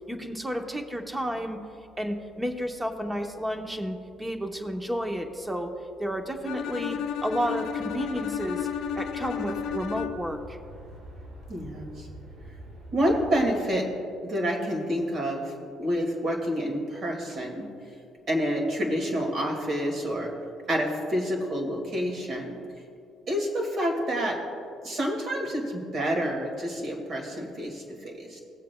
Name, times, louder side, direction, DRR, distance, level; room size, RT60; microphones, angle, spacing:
voice 1, 0.1-1.6 2.0-5.7 6.0-8.7 9.0-10.6, equal, 10° right, 4 dB, 0.9 m, -31 dB
Bowed string instrument, 6.4-10.4, left 8 dB, 75° left, 0.6 m, -33 dB
sound 1, 6.4-13.5, right 1 dB, 65° right, 1.6 m, -46 dB
voice 2, 11.5-12.1 12.9-13.9 14.2-17.7 18.3-20.3 20.7-22.6 23.3-24.4 24.8-28.4, equal, 45° right, 1 dB, 2.1 m, -28 dB
18.0 x 7.5 x 2.3 m, 2.4 s
cardioid pair, 130°, 0 cm